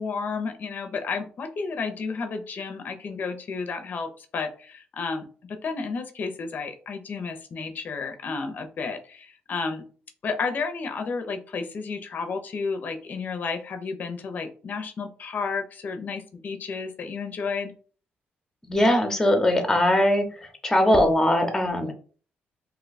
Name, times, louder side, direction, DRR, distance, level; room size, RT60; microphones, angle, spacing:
voice 1, 0.0-9.8 10.2-17.7, left 4 dB, 50° left, 7 dB, 0.5 m, -32 dB
voice 2, 18.7-20.2 20.6-21.9, left 1 dB, 10° left, 5 dB, 0.7 m, -20 dB
2.7 x 2.2 x 4.0 m, 0.41 s
cardioid pair, 105°, 4 cm